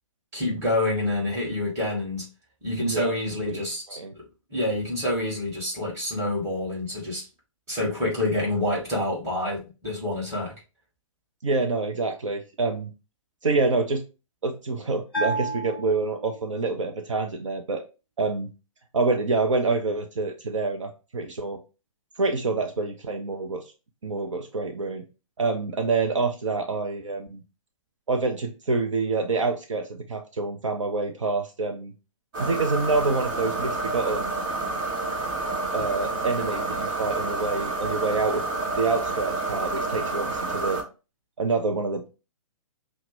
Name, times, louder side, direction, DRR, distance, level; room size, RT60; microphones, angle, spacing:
voice 1, 0.3-2.3 2.6-4.0 4.5-7.3 7.7-10.5, left 1 dB, 15° right, -6 dB, 2.0 m, -27 dB
voice 2, 2.8-3.1 3.4-3.6 3.9-4.1 11.4-12.9 13.4-14.0 14.4-17.8 18.2-18.5 18.9-21.6 22.2-23.6 24.0-25.0 25.4-27.4 28.1-31.9 32.4-34.3 35.7-38.4 38.8-40.8 41.4-42.1, right 3 dB, 65° right, 4 dB, 0.6 m, -27 dB
Bell, 15.1-16.8, right 2 dB, 5° left, 1.1 m, -31 dB
sound 1, 32.3-40.8, right 2 dB, 40° right, 1.4 m, -29 dB
5.7 x 2.1 x 3.1 m, 0.30 s
figure-of-eight pair, 125°, 17 cm